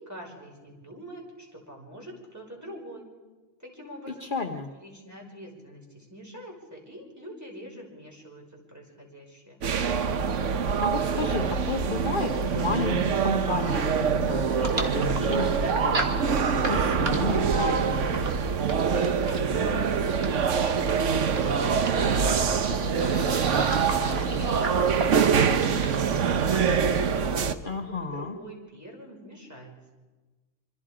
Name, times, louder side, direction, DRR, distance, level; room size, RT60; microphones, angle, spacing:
voice 1, 0.0-3.1 3.6-9.6 19.1-23.4 23.8-26.1 26.4-27.7 28.0-29.8, equal, 15° right, -1 dB, 5.4 m, -43 dB
voice 2, 4.2-4.7 10.8-16.2 16.7-18.0 27.6-28.4, left 4 dB, 45° left, 4 dB, 1.2 m, -32 dB
sound 1, 9.6-27.5, right 6 dB, 75° right, 1.3 m, -25 dB
sound 2, 14.6-26.7, right 2 dB, 55° right, 2.2 m, -35 dB
26.5 x 25.0 x 5.0 m, 1.2 s
omnidirectional pair, 1.3 m